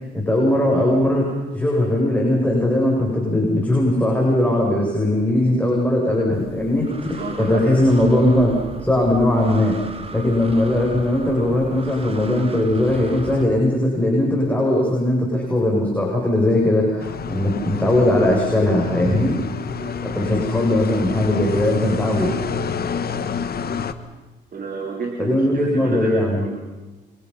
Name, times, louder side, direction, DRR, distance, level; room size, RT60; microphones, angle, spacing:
voice 1, 0.1-9.8 10.1-19.3 20.0-22.4 25.2-26.4, left 1 dB, 5° left, -3 dB, 7.9 m, -19 dB
Breathing, 6.3-13.4, right 3 dB, 30° right, 2.9 m, -37 dB
voice 2, 7.2-7.9 19.7-19.9 24.5-26.6, right 4 dB, 45° right, 0 dB, 4.2 m, -32 dB
sound 1, 17.0-23.9, left 5 dB, 50° left, 1.8 m, -29 dB
28.0 x 27.0 x 5.9 m, 1.2 s
cardioid pair, 90°, 20 cm